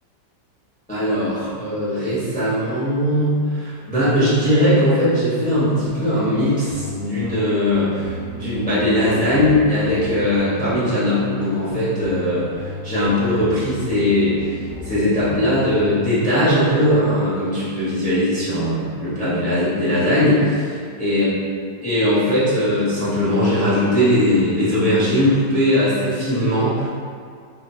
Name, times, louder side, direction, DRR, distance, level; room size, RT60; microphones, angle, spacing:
voice 1, 0.9-14.5 14.8-21.3 21.8-26.9, left 1 dB, 5° left, -10 dB, 0.8 m, -19 dB
sound 1, 5.4-16.0, left 1 dB, 85° left, 1.5 m, -33 dB
3.9 x 3.4 x 2.8 m, 2.2 s
omnidirectional pair, 1.9 m